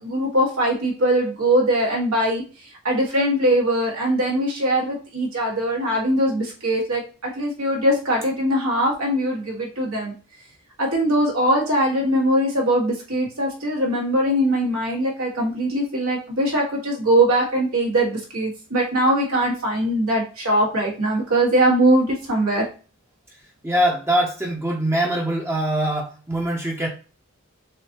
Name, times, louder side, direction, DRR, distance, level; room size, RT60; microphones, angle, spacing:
voice 1, 0.0-10.1 10.8-22.7, right 1 dB, 90° right, -2 dB, 1.9 m, -21 dB
voice 2, 23.6-26.9, right 1 dB, 10° right, 0 dB, 0.7 m, -23 dB
6.3 x 2.7 x 2.9 m, 0.35 s
head